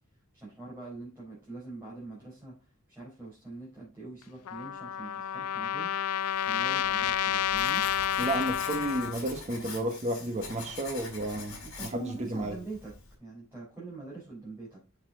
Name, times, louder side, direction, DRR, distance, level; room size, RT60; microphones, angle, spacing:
voice 1, 0.3-2.5 2.9-5.9 6.5-7.8 11.6-12.9 13.2-14.8, right 3 dB, 10° right, 4.2 m, -43 dB
Trumpet, 4.5-9.2, left 10 dB, 85° left, 0.4 m, -30 dB
Writing, 6.4-13.2, left 4 dB, 65° left, 4.0 m, -44 dB
voice 2, 8.2-12.6, right 1 dB, 30° right, 1.1 m, -32 dB
6.8 x 6.8 x 3.8 m
head